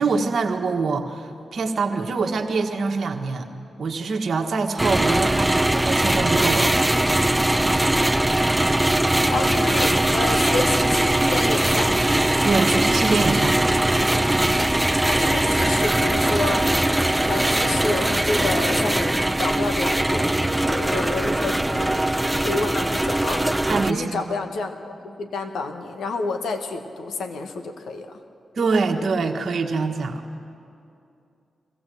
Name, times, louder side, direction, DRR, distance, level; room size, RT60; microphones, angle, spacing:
voice 1, 0.0-3.5 3.8-6.7 12.4-13.6 23.7-24.3 28.5-30.2, right 4 dB, 70° right, 3 dB, 1.5 m, -24 dB
sound 1, 4.8-23.9, right 1 dB, 15° right, 0.8 m, -21 dB
voice 2, 9.3-11.9 15.1-16.7 17.3-22.0 22.4-23.4 23.9-28.1, left 3 dB, 80° left, 7 dB, 1.3 m, -29 dB
22.0 x 15.5 x 7.8 m, 2.6 s
supercardioid pair, 40°, 0 cm